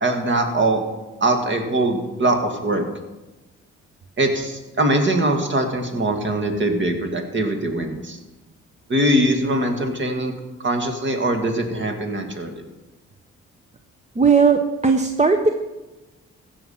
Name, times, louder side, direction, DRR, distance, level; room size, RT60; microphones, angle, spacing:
voice 1, 0.0-0.8 1.2-2.9 4.2-8.2 8.9-10.3 10.6-12.6, right 1 dB, 40° right, 5 dB, 2.1 m, -22 dB
voice 2, 14.2-15.5, right 5 dB, 25° right, 6 dB, 0.8 m, -17 dB
15.5 x 6.0 x 5.7 m, 1.1 s
cardioid pair, 80°, 29 cm